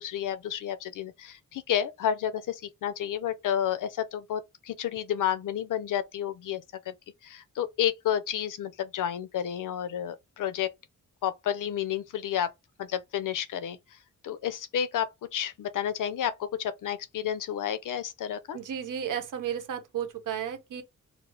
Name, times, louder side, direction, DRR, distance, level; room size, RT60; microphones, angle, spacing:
voice 1, 0.0-6.9 7.2-10.7 11.2-12.5 12.8-13.8 14.2-18.6, left 10 dB, 90° left, 0.6 m, -31 dB
voice 2, 18.5-20.8, right 9 dB, 80° right, 1.0 m, -33 dB
4.5 x 2.0 x 3.8 m
wide cardioid pair, 155°, 31 cm